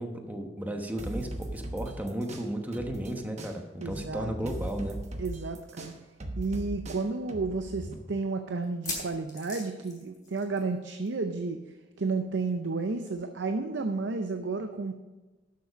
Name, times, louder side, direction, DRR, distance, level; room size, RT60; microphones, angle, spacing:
voice 1, 0.0-5.0, right 1 dB, 10° right, 4 dB, 1.0 m, -34 dB
sound 1, 1.0-3.1 3.4-7.9, right 1 dB, 40° right, 1.1 m, -39 dB
voice 2, 3.8-4.5 5.2-5.9 6.4-11.6 12.0-14.9, right 3 dB, 70° right, 6 dB, 0.6 m, -32 dB
sound 2, 6.4-6.5 7.1-7.2 8.6-10.8 11.0-11.3 11.5-11.6 13.1-13.2, left 3 dB, 20° left, 3.6 m, -40 dB
12.0 x 6.7 x 5.1 m, 1.2 s
head